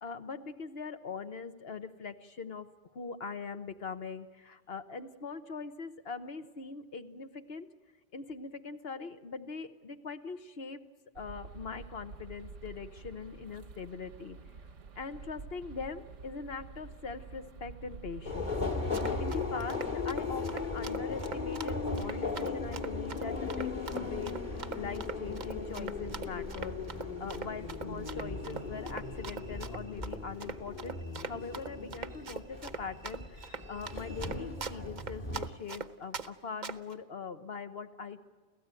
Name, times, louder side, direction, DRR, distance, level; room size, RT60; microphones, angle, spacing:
voice 1, 0.0-2.7 2.9-7.7 8.1-10.8 11.1-14.4 14.9-18.5 19.2-31.0 31.2-38.2, left 5 dB, 55° left, 9 dB, 1.3 m, -42 dB
sound 1, 11.1-19.2, right 4 dB, 85° right, 1.5 m, -48 dB
Subway metro underground, 18.3-35.5, left 4 dB, 40° left, 2.4 m, -37 dB
Run, 18.7-36.3 36.6-36.9, right 5 dB, 45° right, 0.9 m, -41 dB
29.5 x 15.5 x 9.1 m, 1.4 s
omnidirectional pair, 1.2 m